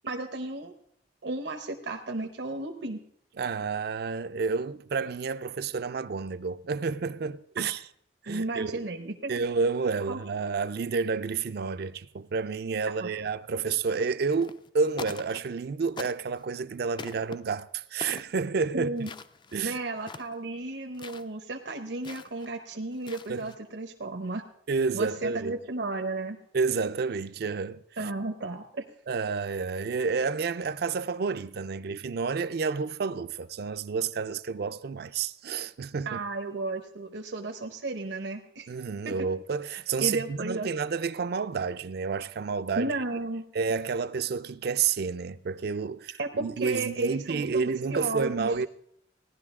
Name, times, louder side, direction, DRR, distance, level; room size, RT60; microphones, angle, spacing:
voice 1, 0.0-0.7 1.2-3.0 7.6-7.7 8.3-9.4 10.1-10.2 13.0-13.1 18.7-19.1 19.6-24.4 24.9-26.4 28.0-28.8 36.1-38.7 39.0-39.2 40.0-40.7 42.8-43.4 46.2-48.5, right 2 dB, 80° right, 0.8 m, -33 dB
voice 2, 3.4-7.8 8.2-8.9 9.3-18.9 19.5-19.8 23.3-23.5 24.7-25.5 26.5-27.8 29.1-36.2 38.7-42.9 43.5-46.1 46.4-48.7, right 5 dB, 60° right, 0.4 m, -30 dB
sound 1, 14.3-14.7 14.9-15.6 16.0-16.5 17.0-17.4 18.0-18.4 19.0-19.6 20.0-20.4 20.9-21.3 22.0-22.5 22.9-23.6, left 4 dB, 25° left, 0.4 m, -43 dB
16.5 x 11.0 x 3.6 m
head